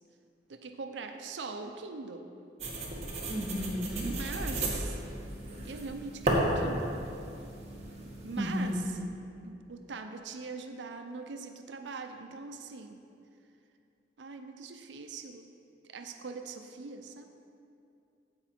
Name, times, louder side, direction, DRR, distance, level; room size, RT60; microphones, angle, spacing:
voice 1, 0.5-2.3 4.0-5.0 5.6-7.0 8.2-8.8 9.4-13.0 14.2-15.5 15.8-17.3, right 4 dB, 85° right, 6 dB, 0.6 m, -42 dB
sound 1, 2.6-8.8, right 1 dB, 40° right, 1.5 m, -34 dB
voice 2, 3.3-4.1 8.4-9.0, equal, 5° right, -3 dB, 1.2 m, -33 dB
15.0 x 5.2 x 4.4 m, 2.6 s
head